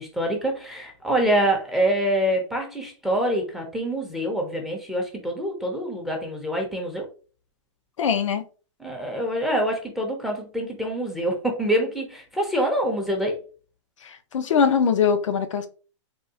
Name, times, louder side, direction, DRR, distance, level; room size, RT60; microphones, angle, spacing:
voice 1, 0.0-7.1 8.8-13.4, right 1 dB, ahead, 0.6 m, -25 dB
voice 2, 8.0-8.4 14.0-15.7, left 6 dB, 80° left, 0.6 m, -22 dB
3.5 x 2.3 x 2.7 m
hypercardioid pair, 145°, 16 cm